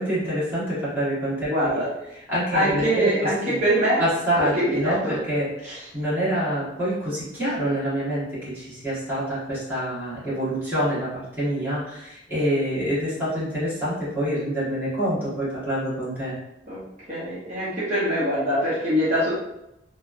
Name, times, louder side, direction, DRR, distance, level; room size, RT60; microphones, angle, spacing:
voice 1, 0.0-1.5 2.3-3.6 4.0-16.4, equal, 10° right, -11 dB, 1.2 m, -26 dB
voice 2, 1.5-1.9 2.5-4.0 4.6-5.2 5.6-5.8 16.7-16.8 17.1-19.3, equal, 40° right, -10 dB, 0.9 m, -23 dB
3.1 x 2.1 x 2.4 m, 0.87 s
head